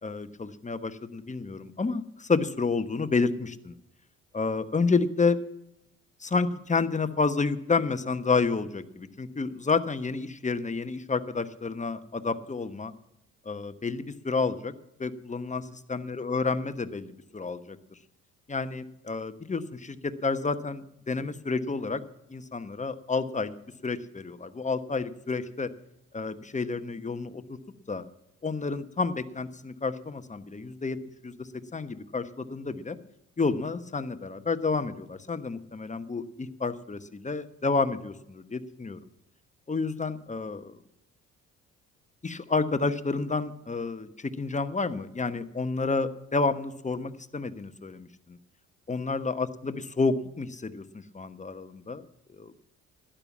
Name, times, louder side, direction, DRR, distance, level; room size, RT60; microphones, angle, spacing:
voice 1, 0.0-3.8 4.3-5.4 6.2-12.9 13.4-14.7 15.0-17.8 18.5-22.0 22.3-23.5 23.8-25.7 26.1-27.4 27.9-28.0 28.4-31.0 31.2-33.0 33.4-39.0 39.7-40.7 42.2-48.4 48.9-52.0 52.3-52.5, left 4 dB, 20° left, 10 dB, 1.1 m, -30 dB
12.0 x 10.0 x 7.3 m, 0.80 s
hypercardioid pair, 50°, 35 cm